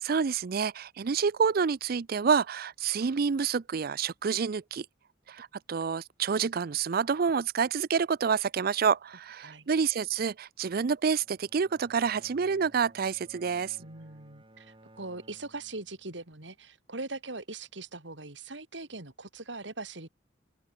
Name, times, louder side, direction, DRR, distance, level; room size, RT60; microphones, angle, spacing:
voice 1, 0.0-4.9 5.3-13.8, right 6 dB, 55° right, 0.5 m, -28 dB
Bowed string instrument, 11.1-16.4, right 1 dB, 30° right, 6.2 m, -58 dB
voice 2, 13.8-20.1, right 2 dB, 75° right, 3.6 m, -41 dB
open air
head